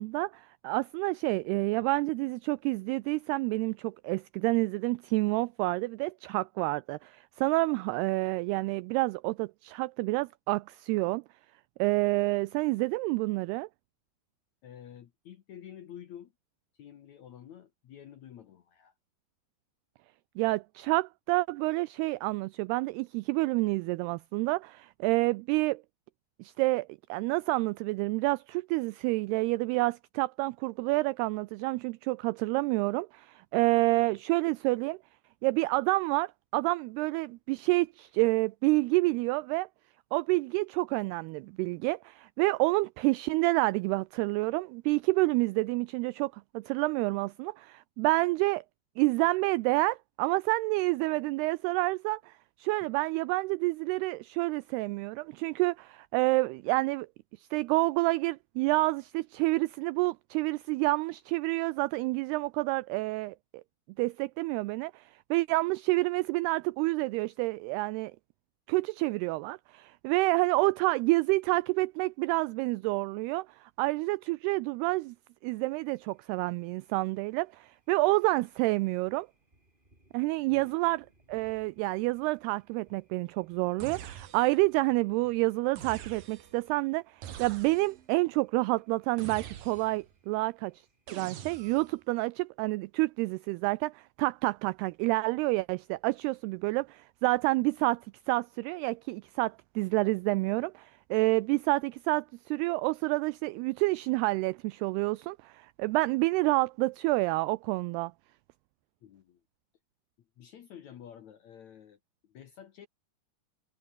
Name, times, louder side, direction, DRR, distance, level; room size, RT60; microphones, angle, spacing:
voice 1, 0.0-11.2 11.8-13.7 20.4-25.8 26.4-35.0 35.4-39.7 40.1-48.6 49.0-57.1 57.3-63.4 64.0-68.1 68.7-75.2 75.4-79.3 80.1-90.9 91.1-108.1, right 22 dB, 85° right, 2.3 m, -28 dB
voice 2, 14.6-16.3 16.7-18.9 80.5-80.8 109.0-109.4 110.4-112.9, left 10 dB, 65° left, 1.9 m, -50 dB
Thunder, 75.4-91.1, right 1 dB, 10° right, 6.9 m, -68 dB
sound 1, 83.8-84.7 85.8-86.6 87.2-88.1 89.2-90.1 91.1-92.0, right 10 dB, 60° right, 3.5 m, -45 dB
omnidirectional pair, 5.0 m